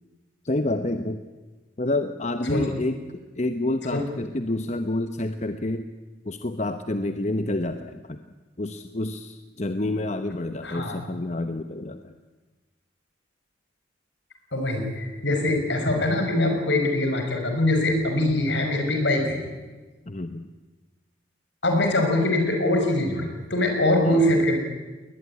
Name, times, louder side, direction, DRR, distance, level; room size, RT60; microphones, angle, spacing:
voice 1, 0.4-1.2 1.8-5.9 6.2-8.2 8.6-12.1 20.1-20.5 24.0-24.3, left 2 dB, 35° left, 9 dB, 0.9 m, -28 dB
voice 2, 10.6-11.0 14.5-19.4 21.6-24.6, left 1 dB, 70° left, 3 dB, 5.8 m, -23 dB
21.0 x 20.0 x 9.8 m, 1.2 s
head